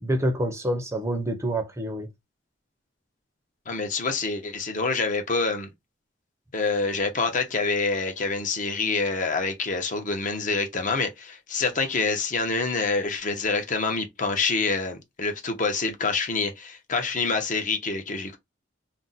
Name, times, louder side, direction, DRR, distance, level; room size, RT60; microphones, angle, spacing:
voice 1, 0.0-2.1, right 1 dB, 15° right, 0.5 m, -27 dB
voice 2, 3.7-5.7 6.5-18.4, left 4 dB, 40° left, 0.7 m, -26 dB
2.5 x 2.1 x 3.8 m
head